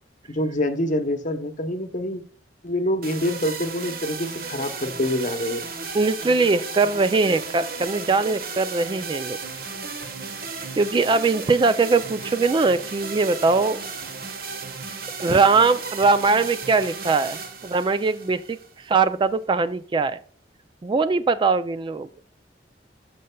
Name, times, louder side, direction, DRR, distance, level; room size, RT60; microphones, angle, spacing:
voice 1, 0.3-2.2 2.6-5.7, left 1 dB, 45° left, 8 dB, 0.8 m, -26 dB
sound 1, 3.0-19.0, right 4 dB, 55° right, 1.2 m, -35 dB
voice 2, 5.9-9.4 10.8-13.8 15.2-18.6 18.9-20.2 20.8-22.1, right 4 dB, 25° right, 13 dB, 0.3 m, -21 dB
12.0 x 6.5 x 2.2 m, 0.43 s
head